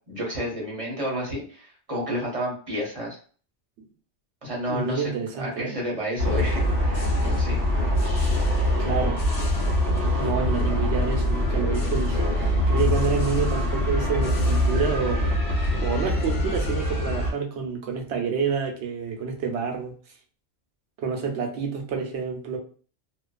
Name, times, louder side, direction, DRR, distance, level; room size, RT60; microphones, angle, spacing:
voice 1, 0.1-3.2 4.4-5.1 5.4-7.6, equal, 30° right, 0.9 m, -31 dB
voice 2, 4.7-5.7 8.7-9.2 10.2-15.3 15.8-19.9 21.0-22.6, right 6 dB, 70° right, 0.9 m, -28 dB
sound 1, 6.2-17.3, left 1 dB, 55° left, 0.9 m, -24 dB
2.5 x 2.2 x 2.2 m
omnidirectional pair, 1.2 m